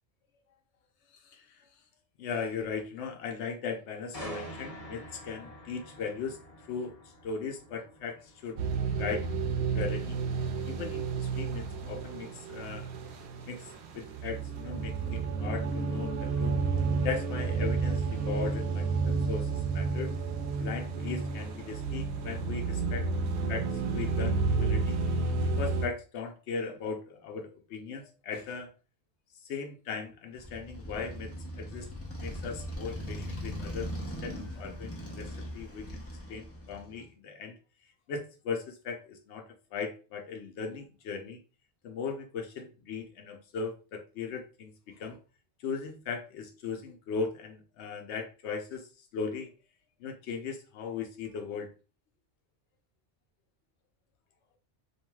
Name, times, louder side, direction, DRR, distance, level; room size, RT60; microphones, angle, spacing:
voice 1, 1.2-1.6 2.2-6.4 6.7-6.9 7.2-8.6 9.0-9.3 9.7-10.2 10.7-12.9 13.5-13.6 13.9-16.5 17.0-20.1 20.6-23.1 23.5-25.0 25.6-28.7 29.5-31.9 32.2-33.9 34.2-35.9 36.3-37.5 38.1-41.4 41.8-45.2 45.6-49.5 50.0-51.7, left 5 dB, 85° left, 4 dB, 0.9 m, -38 dB
sound 1, 4.1-18.0 18.4-18.7, equal, 35° left, 0.9 m, -49 dB
sound 2, 8.6-25.9, right 4 dB, 75° right, 0.8 m, -31 dB
Motorcycle, 30.4-37.1, equal, 15° left, 0.6 m, -40 dB
3.1 x 2.5 x 2.2 m, 0.33 s
omnidirectional pair, 1.1 m